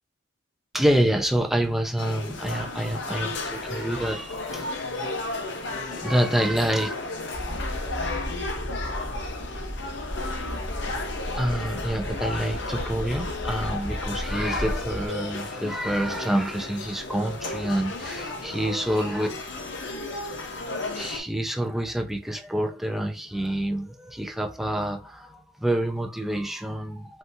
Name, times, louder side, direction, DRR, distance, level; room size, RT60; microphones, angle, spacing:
voice 1, 0.7-4.7 5.9-6.9 11.3-19.3 21.0-27.2, right 1 dB, ahead, 0.3 m, -27 dB
sound 1, 2.0-21.2, left 3 dB, 65° left, 0.6 m, -34 dB
sound 2, 7.3-15.1, equal, 15° left, 1.0 m, -34 dB
3.5 x 2.6 x 2.6 m
head